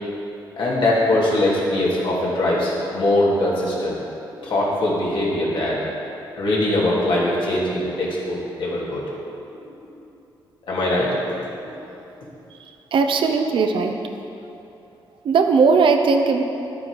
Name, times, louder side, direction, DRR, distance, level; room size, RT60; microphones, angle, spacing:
voice 1, 0.6-3.9 4.3-5.8 6.4-9.0 9.5-9.6 10.7-11.1 11.6-11.7, left 1 dB, 70° left, -5 dB, 2.6 m, -21 dB
voice 2, 12.5-14.0 15.2-16.4, right 4 dB, 70° right, 5 dB, 0.8 m, -18 dB
10.5 x 8.8 x 4.8 m, 2.9 s
cardioid pair, 110°, 9 cm